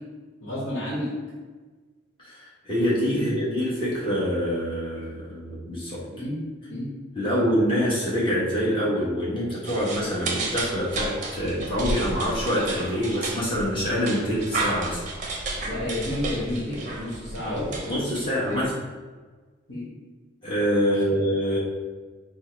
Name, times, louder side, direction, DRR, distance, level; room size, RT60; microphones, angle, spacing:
voice 1, 0.4-1.1 3.1-3.3 6.1-6.4 6.7-6.9 7.2-7.4 15.6-17.9 18.3-18.6 19.7-19.9 20.9-21.0, left 1 dB, 70° left, -7 dB, 1.1 m, -31 dB
voice 2, 2.2-6.0 7.1-15.0 17.4-18.7 20.4-21.6, equal, 25° left, -7 dB, 1.2 m, -25 dB
sound 1, 9.6-18.7, right 2 dB, 40° right, 0.6 m, -32 dB
4.5 x 2.1 x 4.5 m, 1.4 s
head